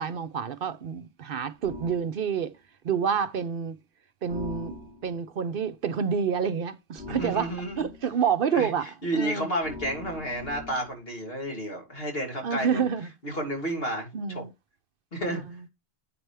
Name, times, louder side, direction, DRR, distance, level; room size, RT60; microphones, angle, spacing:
voice 1, 0.0-2.5 2.8-3.8 4.2-7.5 7.8-8.9 9.1-9.5 12.4-13.1 14.1-14.5 15.3-15.6, right 7 dB, 60° right, 0.8 m, -28 dB
sound 1, 1.6-2.1 4.3-5.2 7.0-8.1 9.6-11.0, left 3 dB, 10° right, 2.8 m, -41 dB
voice 2, 7.1-7.9 8.5-12.8 13.2-14.4 15.1-15.4, right 1 dB, 65° left, 2.9 m, -31 dB
8.5 x 5.9 x 3.3 m
omnidirectional pair, 1.1 m